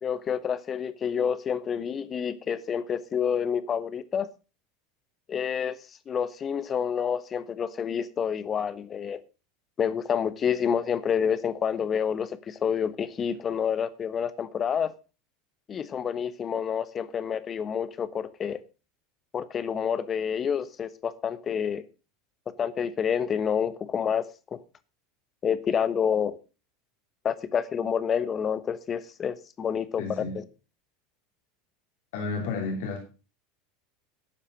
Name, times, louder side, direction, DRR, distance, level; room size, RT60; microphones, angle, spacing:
voice 1, 0.0-4.3 5.3-5.8 6.1-9.2 9.8-14.9 15.7-18.6 19.3-21.8 22.6-24.2 24.5-24.6 25.4-26.4 27.2-30.4, left 7 dB, 35° left, 1.2 m, -28 dB
voice 2, 30.0-30.4 32.1-33.0, left 4 dB, 70° left, 2.9 m, -31 dB
12.0 x 7.3 x 6.1 m
hypercardioid pair, 85°, 0 cm